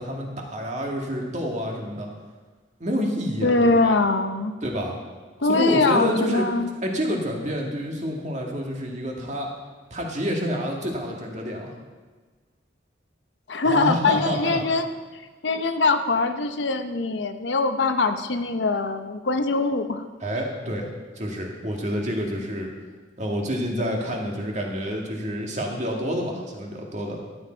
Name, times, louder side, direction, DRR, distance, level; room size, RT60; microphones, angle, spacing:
voice 1, 0.0-2.1 2.8-4.0 4.6-5.0 5.5-6.5 6.8-9.5 9.9-11.7 13.6-14.6 20.2-20.9 21.2-22.7 23.2-27.2, equal, 40° right, 0 dB, 1.8 m, -28 dB
voice 2, 3.4-4.5 5.4-6.7 13.5-14.9 15.4-20.0, left 3 dB, 70° left, 8 dB, 0.8 m, -22 dB
14.0 x 9.0 x 4.4 m, 1.4 s
head